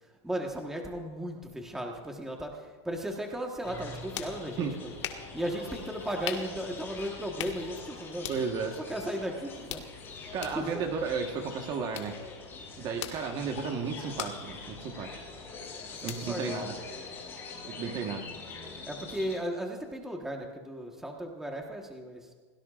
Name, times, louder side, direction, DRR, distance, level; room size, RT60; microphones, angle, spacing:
voice 1, 0.0-4.9 5.3-8.3 8.8-10.8 15.9-16.7 18.9-22.3, equal, 5° right, 1 dB, 1.3 m, -36 dB
sound 1, 3.6-19.3, left 4 dB, 15° left, 4.7 m, -44 dB
sound 2, 3.7-17.4, left 11 dB, 70° left, 1.8 m, -45 dB
voice 2, 8.3-8.8 10.3-12.1 12.8-15.2 16.0-16.7 17.6-18.3, right 5 dB, 30° right, 4 dB, 1.3 m, -33 dB
28.5 x 17.5 x 2.5 m, 1.5 s
supercardioid pair, 160°, 15 cm